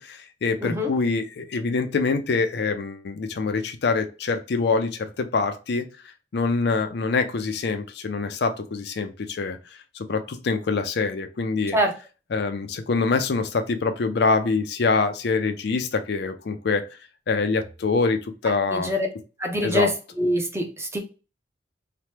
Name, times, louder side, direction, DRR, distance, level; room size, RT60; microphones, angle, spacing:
voice 1, 0.0-5.8 6.3-9.6 9.9-11.8 12.3-16.8 17.3-18.9 19.6-19.9, left 4 dB, 60° left, 8 dB, 0.4 m, -25 dB
voice 2, 18.7-19.1 19.4-19.9 20.2-21.0, equal, 15° right, 3 dB, 0.5 m, -24 dB
2.9 x 2.1 x 3.1 m, 0.32 s
head